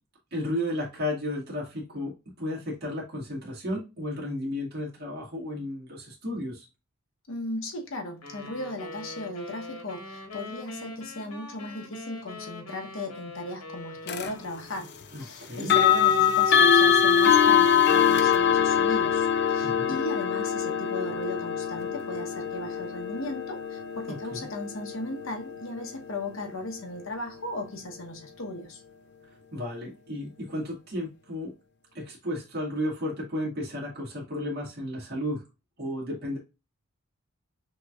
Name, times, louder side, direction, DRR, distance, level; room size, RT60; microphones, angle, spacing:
voice 1, 0.3-6.7 15.1-15.7 19.6-19.9 24.1-24.5 29.3-31.5 31.9-35.4 35.8-36.4, left 1 dB, 45° right, 2.0 m, -33 dB
voice 2, 7.3-14.9 15.2-28.8, left 1 dB, 65° left, 1.0 m, -36 dB
sound 1, 8.2-15.2, left 2 dB, 85° left, 1.6 m, -43 dB
sound 2, 14.1-14.3 15.6-26.5, left 8 dB, 50° left, 0.5 m, -23 dB
6.2 x 2.9 x 2.4 m
head